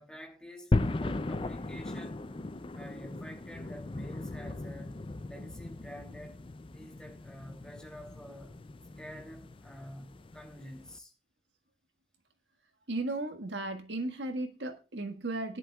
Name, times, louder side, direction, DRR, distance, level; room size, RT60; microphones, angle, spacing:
voice 1, 0.0-2.2 2.7-6.4 6.7-8.6 9.0-11.1, equal, 5° left, 2.9 m, -48 dB
sound 1, 0.7-11.0, left 2 dB, 30° left, 0.5 m, -37 dB
voice 2, 12.9-15.6, right 2 dB, 75° right, 1.8 m, -35 dB
20.5 x 10.5 x 2.4 m
head